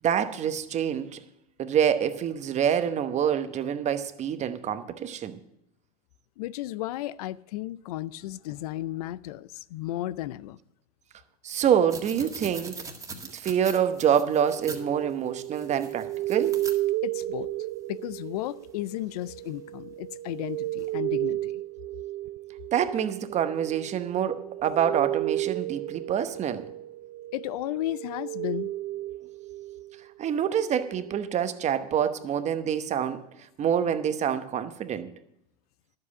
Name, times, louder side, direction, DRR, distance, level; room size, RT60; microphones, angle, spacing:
voice 1, 0.0-1.2 1.6-5.4 11.4-12.8 13.2-16.6 22.7-26.7 30.2-33.3 33.6-35.1, right 8 dB, 35° right, 1.0 m, -26 dB
voice 2, 6.4-10.6 17.0-17.5 17.9-21.6 27.3-28.7, left 15 dB, 75° left, 0.5 m, -34 dB
sound 1, 11.9-14.8 15.4-16.8 19.2-19.5 20.8-20.9, right 3 dB, 15° right, 1.8 m, -41 dB
sound 2, 13.8-30.1 30.5-31.3, right 15 dB, 55° right, 0.4 m, -34 dB
11.0 x 7.7 x 7.2 m
hypercardioid pair, 100°, 20 cm